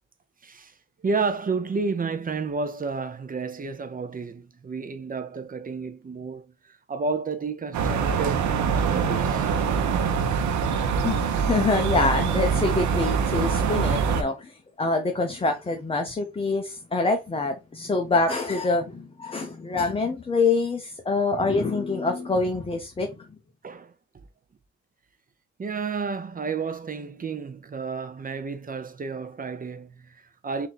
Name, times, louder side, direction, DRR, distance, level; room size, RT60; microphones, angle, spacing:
voice 1, 0.4-0.7 1.0-9.5 23.6-23.9 25.6-30.7, right 4 dB, 30° right, 0.7 m, -31 dB
sound 1, 7.7-14.2, right 6 dB, 70° right, 0.8 m, -24 dB
voice 2, 11.0-23.2, left 3 dB, 20° left, 0.7 m, -25 dB
3.8 x 2.8 x 4.0 m
cardioid pair, 90°, 30 cm